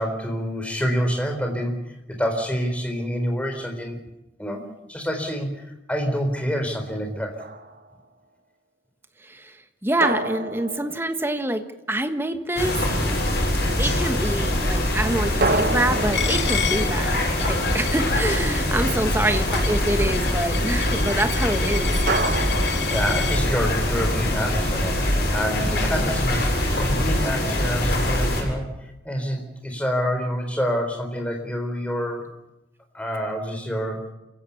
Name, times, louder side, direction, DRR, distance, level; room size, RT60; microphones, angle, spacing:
voice 1, 0.0-4.0 4.4-5.6 5.9-7.4 22.9-28.7 29.0-32.3 32.9-34.1, equal, 5° left, 3 dB, 3.9 m, -27 dB
sound 1, 7.4-8.0 10.0-11.8 15.4-18.0 22.1-23.7, right 2 dB, 55° right, 1.4 m, -29 dB
voice 2, 9.2-9.6 9.8-11.6 11.9-12.9 13.8-21.9, right 1 dB, 15° right, 8 dB, 1.4 m, -26 dB
sound 2, 12.6-28.4, left 1 dB, 60° left, 7.4 m, -23 dB
Coin (dropping), 16.1-23.4, left 8 dB, 85° left, 2.3 m, -32 dB
28.0 x 16.0 x 7.1 m, 0.94 s
head